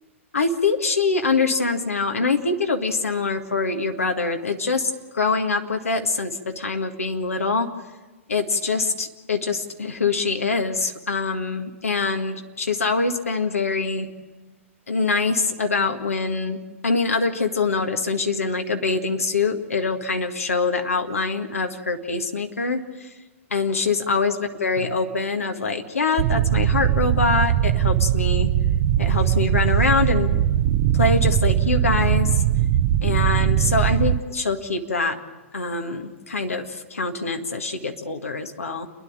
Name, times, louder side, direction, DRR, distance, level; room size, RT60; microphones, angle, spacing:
voice 1, 0.3-7.7 8.3-14.1 14.9-23.1 23.5-28.5 29.0-30.4 30.9-32.4 33.0-35.2 35.5-38.9, left 4 dB, 85° left, 5 dB, 1.9 m, -24 dB
sound 1, 26.2-34.2, right 11 dB, 45° right, 0.7 m, -20 dB
29.5 x 10.5 x 8.8 m, 1.2 s
hypercardioid pair, 115°, 7 cm